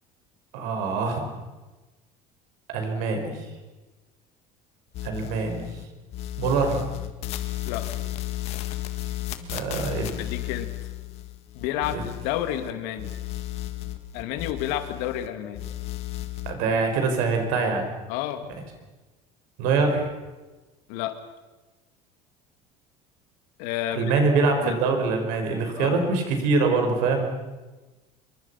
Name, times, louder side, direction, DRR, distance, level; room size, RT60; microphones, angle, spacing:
voice 1, 0.5-1.3 2.7-3.4 5.0-5.7 6.4-6.8 9.4-10.1 11.9-12.0 16.5-17.8 19.6-20.1 23.9-27.3, right 4 dB, 70° right, 4 dB, 5.5 m, -24 dB
sound 1, 4.9-5.8 6.1-12.7 13.0-15.3 15.5-16.5, left 14 dB, 50° left, 1.8 m, -34 dB
voice 2, 10.2-10.9 11.5-13.1 14.1-15.6 18.1-18.5 20.9-21.2 23.6-24.1 24.6-24.8 25.8-26.0, left 11 dB, 80° left, 9 dB, 2.4 m, -30 dB
26.5 x 23.5 x 5.8 m, 1.2 s
cardioid pair, 170°, 14 cm